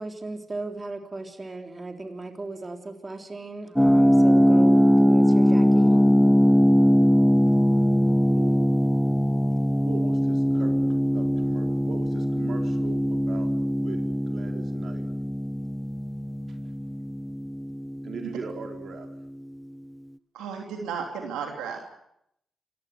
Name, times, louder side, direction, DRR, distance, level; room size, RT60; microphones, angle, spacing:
voice 1, 0.0-6.1, right 2 dB, 35° right, 5 dB, 3.8 m, -36 dB
sound 1, 3.8-18.5, equal, 5° left, 1.0 m, -21 dB
voice 2, 8.3-9.1 9.8-15.1 16.5-16.6 18.0-19.1, right 5 dB, 65° right, 4 dB, 4.4 m, -40 dB
voice 3, 20.3-21.8, right 6 dB, 90° right, 2 dB, 3.2 m, -33 dB
27.0 x 16.5 x 9.4 m, 0.77 s
supercardioid pair, 45°, 0 cm